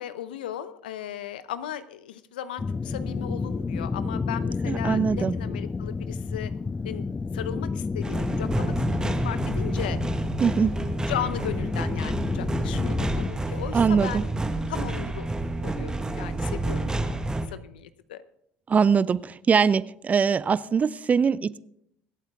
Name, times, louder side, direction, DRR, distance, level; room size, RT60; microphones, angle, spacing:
voice 1, 0.0-6.5 6.8-7.0 7.3-10.0 10.8-14.3 14.7-15.3 15.6-17.2 17.5-18.2, left 11 dB, 85° left, 14 dB, 0.6 m, -36 dB
sound 1, 2.6-13.3, left 4 dB, 20° left, 0.4 m, -30 dB
voice 2, 4.7-5.3 10.4-10.8 13.7-14.2 18.7-21.6, right 6 dB, 30° right, 19 dB, 0.5 m, -22 dB
sound 2, 8.0-17.5, right 2 dB, 15° right, 1.3 m, -29 dB
24.0 x 8.1 x 3.5 m, 0.74 s
hypercardioid pair, 75°, 5 cm